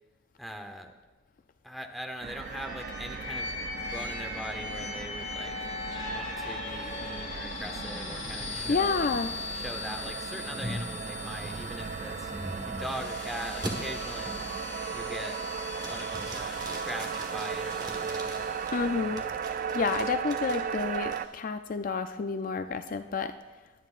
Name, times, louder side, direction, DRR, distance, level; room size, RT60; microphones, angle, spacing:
voice 1, 0.4-0.9 1.6-3.5 3.8-5.7 6.1-9.1 9.5-12.3 12.7-14.4 14.9-15.4 15.8-18.5 19.0-19.4, equal, ahead, 5 dB, 0.8 m, -41 dB
sound 1, 2.2-21.3, right 6 dB, 45° right, 0.3 m, -36 dB
sound 2, 2.4-19.2, left 4 dB, 70° left, 3.2 m, -40 dB
sound 3, 6.8-13.1 13.6-13.7 14.2-14.6 15.0-15.4 15.8-18.7 19.2-21.2, right 1 dB, 20° right, 1.3 m, -42 dB
voice 2, 8.7-9.3 18.7-23.3, left 4 dB, 45° left, 9 dB, 0.4 m, -30 dB
21.5 x 9.2 x 2.5 m, 1.3 s
head